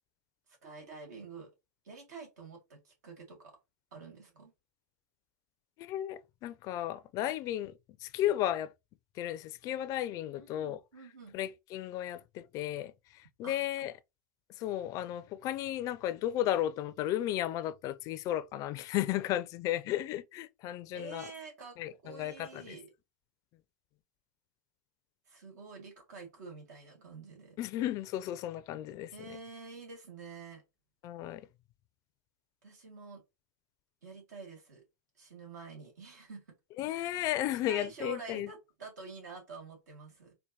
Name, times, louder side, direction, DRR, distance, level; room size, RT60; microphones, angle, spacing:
voice 1, 0.5-1.5 1.8-3.6 3.9-4.5 7.3-7.4 10.4-11.4 13.4-13.6 20.9-21.8 22.0-22.9 25.3-27.6 29.1-30.6 32.6-33.2 34.0-34.8 35.2-36.5 36.8-40.3, right 4 dB, 85° right, 1.8 m, -48 dB
voice 2, 5.8-8.7 9.2-10.8 11.3-13.9 14.6-21.3 21.8-22.8 27.6-29.4 31.0-31.5 36.8-38.5, left 13 dB, 40° left, 0.4 m, -34 dB
4.4 x 2.1 x 2.8 m
hypercardioid pair, 120°, 9 cm